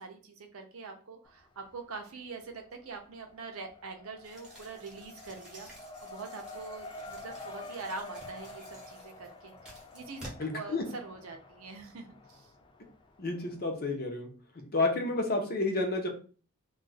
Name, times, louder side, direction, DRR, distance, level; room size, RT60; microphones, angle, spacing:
voice 1, 0.0-9.5 9.9-12.5, right 4 dB, 75° right, 4 dB, 0.7 m, -44 dB
Race car auto racing, 1.3-2.0 2.3-13.7, left 2 dB, 20° left, 0.3 m, -49 dB
sound 1, 4.2-10.3, equal, 5° right, 1.0 m, -52 dB
voice 2, 10.4-10.8 13.2-14.3 14.5-16.1, left 2 dB, 45° left, 3 dB, 0.8 m, -30 dB
2.4 x 2.3 x 3.9 m, 0.39 s
head